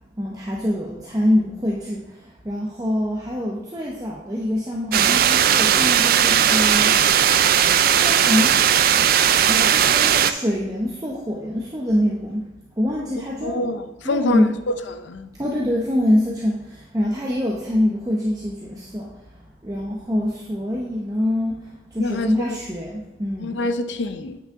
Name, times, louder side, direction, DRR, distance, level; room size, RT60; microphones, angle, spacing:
voice 1, 0.2-2.1 2.4-7.0 7.9-8.6 8.9-9.0 9.5-12.4 12.8-13.7 14.0-14.6 15.4-19.2 19.6-21.6 21.9-23.6, left 1 dB, 20° right, -3 dB, 0.7 m, -24 dB
sound 1, 4.9-10.3, right 9 dB, 45° right, 0.3 m, -17 dB
voice 2, 13.4-14.7 15.0-15.3 22.0-22.6 23.4-24.4, left 2 dB, 65° left, 9 dB, 0.6 m, -26 dB
8.4 x 6.1 x 3.6 m, 0.97 s
head